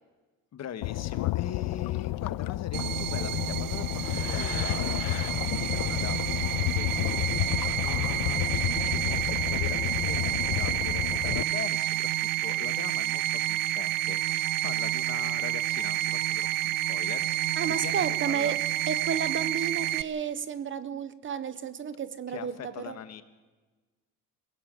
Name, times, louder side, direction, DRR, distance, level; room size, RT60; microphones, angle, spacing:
voice 1, 0.5-12.1 12.4-18.6 22.3-23.2, left 9 dB, 50° left, 1.4 m, -41 dB
sound 1, 0.8-11.4, left 18 dB, 80° left, 0.5 m, -31 dB
sound 2, 2.7-20.0, right 14 dB, 75° right, 0.6 m, -29 dB
voice 2, 17.6-23.0, right 7 dB, 35° right, 0.7 m, -32 dB
22.5 x 16.0 x 7.7 m
cardioid pair, 175°, 34 cm